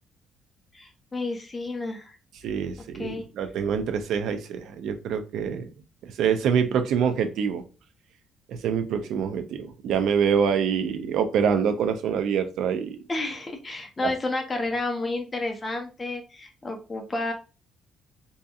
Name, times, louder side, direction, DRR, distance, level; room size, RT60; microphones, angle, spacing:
voice 1, 0.7-2.2 3.0-3.2 13.1-17.3, left 2 dB, 20° left, 3 dB, 0.5 m, -31 dB
voice 2, 2.4-5.7 6.0-7.6 8.5-13.0 14.0-14.1, right 7 dB, 70° right, 8 dB, 0.3 m, -25 dB
2.6 x 2.5 x 2.3 m, 0.32 s
cardioid pair, 165°, 0 cm